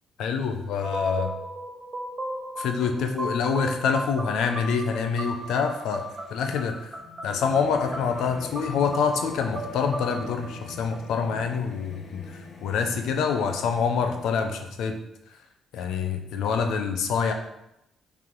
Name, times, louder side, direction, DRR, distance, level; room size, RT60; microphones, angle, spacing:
voice 1, 0.2-1.3 2.6-6.0 6.3-6.9 7.2-12.2 12.6-15.0 15.7-17.3, left 6 dB, 80° left, 6 dB, 0.7 m, -26 dB
sound 1, 0.8-11.5, right 1 dB, 25° right, 1.2 m, -37 dB
Singing / Musical instrument, 5.2-14.7, left 4 dB, 55° left, 1.2 m, -44 dB
5.9 x 3.5 x 4.7 m, 0.84 s
cardioid pair, 90°, 0 cm